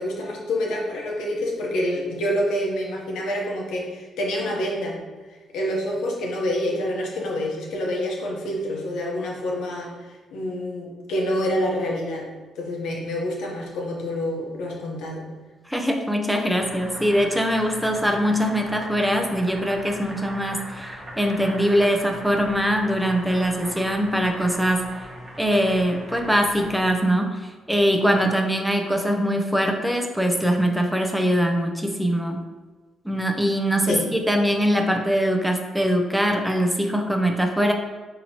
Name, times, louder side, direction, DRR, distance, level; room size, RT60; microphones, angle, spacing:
voice 1, 0.0-5.0 5.5-9.9 10.3-15.3 33.9-34.0, equal, 85° left, -1 dB, 0.8 m, -27 dB
voice 2, 15.7-24.9 25.4-32.4 33.0-37.7, equal, 5° right, 3 dB, 0.4 m, -22 dB
Boiling, 16.4-27.1, equal, 30° right, 0.8 m, -39 dB
4.1 x 2.8 x 2.8 m, 1.3 s
cardioid pair, 90°, 0 cm